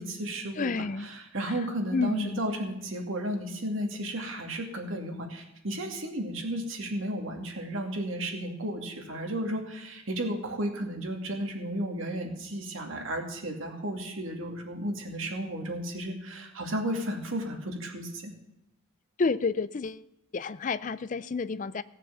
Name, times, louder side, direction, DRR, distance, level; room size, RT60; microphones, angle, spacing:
voice 1, 0.0-18.3, right 1 dB, 85° right, 2 dB, 2.4 m, -33 dB
voice 2, 0.6-1.1 1.9-2.4 19.2-20.0 20.3-21.8, left 4 dB, 40° left, 15 dB, 0.4 m, -29 dB
16.5 x 7.3 x 7.0 m, 0.85 s
head